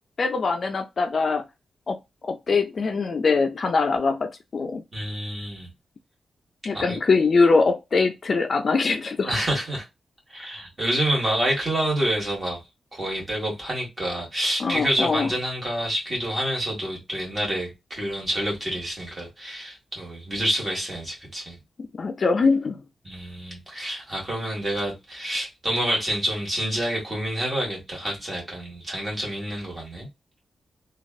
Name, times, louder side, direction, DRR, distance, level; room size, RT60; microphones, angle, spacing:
voice 1, 0.2-1.4 1.9-4.8 6.7-9.4 14.6-15.3 22.0-22.8, left 4 dB, 40° left, 0.4 m, -22 dB
voice 2, 4.9-5.7 6.7-7.0 9.3-9.8 10.3-12.6 12.9-21.6 23.0-30.1, right 1 dB, 25° right, 1.6 m, -28 dB
3.1 x 2.3 x 2.3 m
wide cardioid pair, 165°, 0 cm